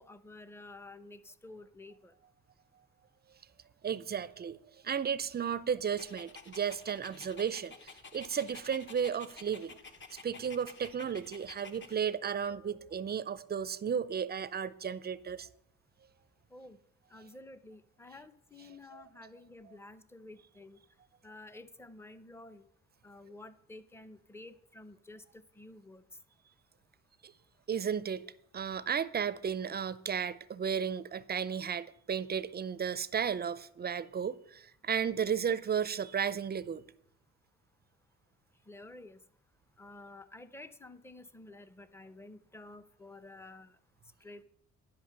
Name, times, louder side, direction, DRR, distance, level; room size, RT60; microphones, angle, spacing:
voice 1, 0.0-2.1 16.5-16.8 17.1-20.8 21.2-22.7 23.0-26.0 38.7-39.2 39.8-43.8 44.2-44.4, left 2 dB, 10° left, 0.6 m, -51 dB
voice 2, 3.8-4.6 4.8-9.8 10.1-15.5 27.2-27.3 27.7-28.2 28.5-36.8, right 7 dB, 35° right, 0.4 m, -34 dB
Dog, 6.0-12.0, left 4 dB, 40° left, 1.0 m, -51 dB
10.5 x 5.7 x 6.5 m
cardioid pair, 90°, 30 cm